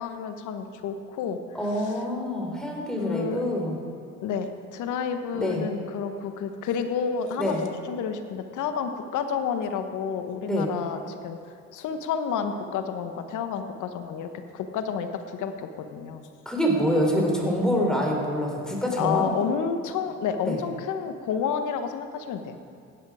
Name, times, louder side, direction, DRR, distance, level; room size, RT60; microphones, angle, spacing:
voice 1, 0.0-1.4 1.8-1.9 2.9-3.4 4.2-7.5 7.9-11.4 11.7-16.3 19.0-22.6, left 7 dB, 65° left, 7 dB, 1.3 m, -30 dB
voice 2, 1.5-3.8 5.3-5.7 7.4-7.6 10.5-10.7 16.5-19.3 20.5-20.6, equal, ahead, -1 dB, 4.1 m, -26 dB
16.0 x 10.0 x 5.0 m, 2.4 s
hypercardioid pair, 65°, 33 cm